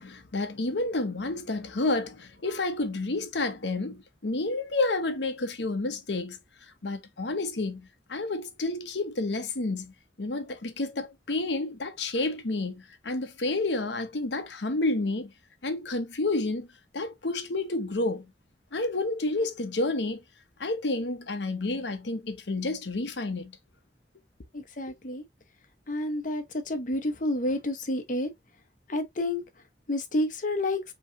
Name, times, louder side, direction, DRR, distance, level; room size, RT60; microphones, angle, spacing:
voice 1, 0.0-6.4 6.8-15.3 15.6-16.7 16.9-18.3 18.7-20.2 20.6-23.6, left 2 dB, 85° left, 0.9 m, -30 dB
voice 2, 24.5-25.2 25.9-28.3 28.9-29.4 29.9-30.8, left 1 dB, 50° left, 0.9 m, -29 dB
5.4 x 3.1 x 2.8 m
head